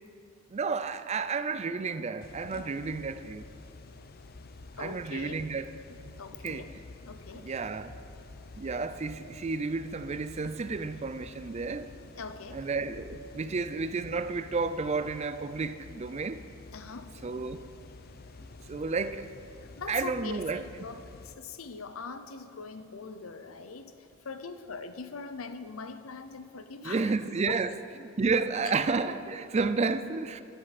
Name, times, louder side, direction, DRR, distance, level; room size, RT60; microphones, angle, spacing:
voice 1, 0.5-3.4 4.8-5.7 6.4-6.6 7.4-7.9 8.6-11.9 12.5-16.4 17.2-17.6 18.7-19.3 19.9-20.6 26.8-27.7 28.0-30.4, right 4 dB, 30° right, 12 dB, 0.4 m, -31 dB
sound 1, 2.2-21.4, left 3 dB, 45° left, 0.5 m, -49 dB
voice 2, 4.8-5.4 5.9-6.7 7.1-7.5 12.2-12.7 13.4-13.6 16.7-17.1 19.6-27.2 27.5-27.6, left 4 dB, 85° left, 10 dB, 0.7 m, -42 dB
14.0 x 11.0 x 4.2 m, 2.5 s
head